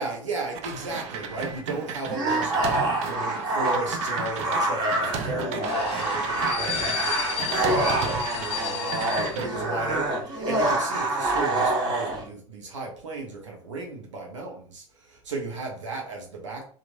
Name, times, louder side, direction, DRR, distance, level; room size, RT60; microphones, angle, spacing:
voice 1, 0.0-16.7, right 3 dB, 85° right, 0 dB, 0.8 m, -35 dB
sound 1, 0.5-6.9 7.4-8.6 8.9-9.5, right 6 dB, 45° right, 0.5 m, -35 dB
sound 2, 2.1-12.2, right 2 dB, 30° right, 1.3 m, -26 dB
sound 3, 5.7-10.1 10.3-10.5, left 10 dB, 40° left, 0.5 m, -33 dB
2.9 x 2.5 x 2.4 m, 0.43 s
hypercardioid pair, 90°, 15 cm